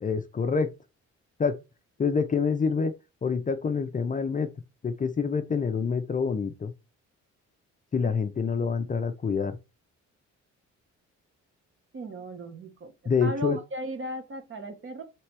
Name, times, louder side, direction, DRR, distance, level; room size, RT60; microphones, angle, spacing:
voice 1, 0.0-0.7 1.4-1.6 2.0-2.9 3.2-4.5 4.8-6.7 7.9-9.6 13.1-13.6, left 5 dB, 25° left, 0.5 m, -26 dB
voice 2, 11.9-15.0, right 1 dB, 40° right, 1.2 m, -37 dB
3.3 x 2.9 x 4.5 m
cardioid pair, 90°, 30 cm